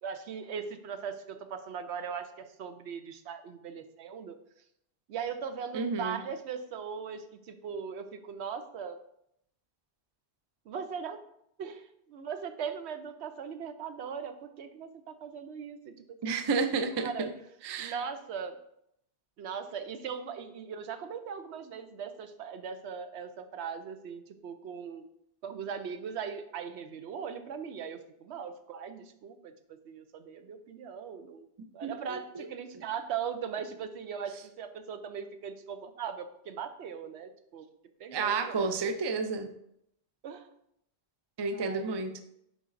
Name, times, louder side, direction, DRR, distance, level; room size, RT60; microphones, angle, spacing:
voice 1, 0.0-4.4 5.1-9.0 10.7-11.2 11.6-16.6 17.0-17.3 17.8-18.6 19.4-25.1 25.4-29.5 29.9-31.5 31.7-37.7 38.0-38.9 40.2-40.5 41.5-41.9, right 7 dB, 75° right, 9 dB, 0.9 m, -39 dB
voice 2, 5.7-6.2 16.2-17.1 17.6-17.9 31.8-32.5 38.1-39.5 41.4-42.2, right 4 dB, 40° right, 8 dB, 0.3 m, -31 dB
10.0 x 4.0 x 2.5 m, 0.75 s
omnidirectional pair, 1.1 m